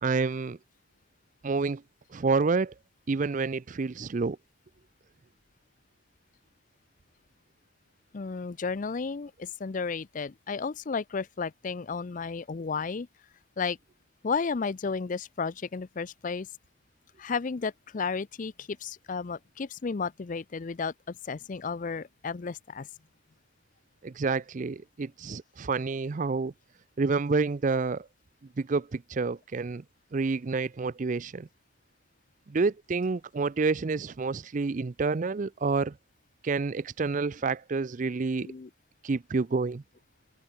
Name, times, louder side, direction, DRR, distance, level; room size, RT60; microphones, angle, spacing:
voice 1, 0.0-0.6 1.4-1.8 2.1-2.7 3.1-4.4 24.0-26.5 27.0-28.1 28.6-29.8 30.1-31.5 32.5-35.9 36.4-38.5 39.0-39.8, right 4 dB, 40° right, 0.4 m, -28 dB
voice 2, 8.1-13.1 13.6-13.8 14.2-16.5 17.2-22.9 38.4-38.7, left 5 dB, 40° left, 0.4 m, -33 dB
head